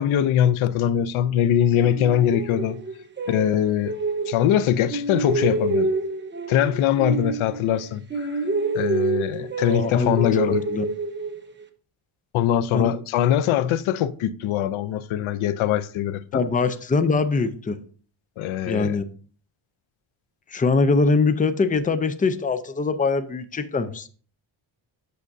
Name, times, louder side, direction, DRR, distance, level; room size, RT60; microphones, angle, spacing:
voice 1, 0.0-2.8 3.3-3.9 4.3-5.9 6.5-8.3 8.7-10.6 12.3-16.4 18.4-19.0, left 10 dB, 85° left, 0.6 m, -22 dB
sound 1, 1.8-4.6 4.9-7.8 8.1-11.6, right 3 dB, 25° right, 1.0 m, -27 dB
voice 2, 9.4-10.9 12.7-12.9 16.3-17.8 18.7-19.1 20.5-24.1, left 4 dB, 20° left, 0.5 m, -23 dB
8.6 x 6.5 x 2.6 m
cardioid pair, 105°, 47 cm